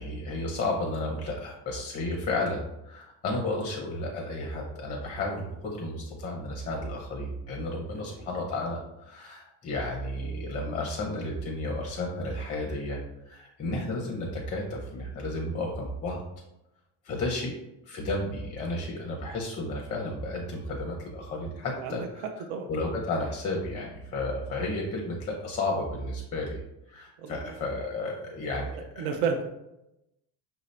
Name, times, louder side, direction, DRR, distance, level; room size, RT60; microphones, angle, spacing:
voice 1, 0.0-13.0 13.2-16.2 17.0-17.5 17.9-22.2 22.7-26.6 26.9-29.1, left 2 dB, 20° left, -1 dB, 0.5 m, -32 dB
voice 2, 7.9-8.2 21.8-21.9 22.5-22.7 27.2-27.5 28.7-29.4, right 6 dB, 65° right, 5 dB, 0.6 m, -32 dB
5.8 x 2.7 x 3.2 m, 0.89 s
cardioid pair, 180°, 39 cm